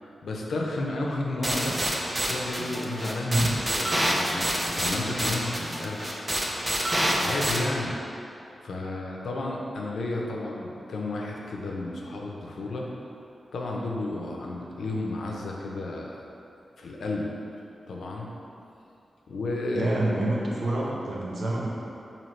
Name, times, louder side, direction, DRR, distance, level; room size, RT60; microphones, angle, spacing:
voice 1, 0.0-1.8 2.3-3.5 3.7-6.3 7.2-8.0 8.6-12.9 13.5-16.2 16.8-17.3 17.9-18.3 19.3-19.9, left 2 dB, 85° left, -1 dB, 0.5 m, -32 dB
sound 1, 1.4-7.6, right 1 dB, 20° right, 0.5 m, -27 dB
voice 2, 3.3-3.6 19.7-21.7, right 2 dB, 70° right, -4 dB, 0.7 m, -27 dB
4.2 x 2.8 x 3.1 m, 2.7 s
wide cardioid pair, 85°, 0 cm